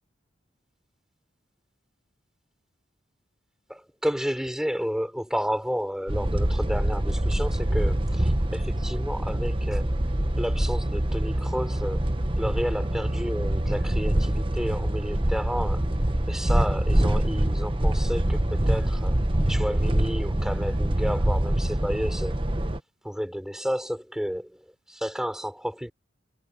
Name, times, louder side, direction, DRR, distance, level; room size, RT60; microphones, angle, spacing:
voice 1, 3.7-9.9 10.4-12.0 12.4-15.9 16.3-19.2 19.5-22.4 23.0-25.9, equal, 5° right, 5.4 m, -31 dB
sound 1, 6.1-22.8, right 1 dB, 25° right, 1.2 m, -25 dB
head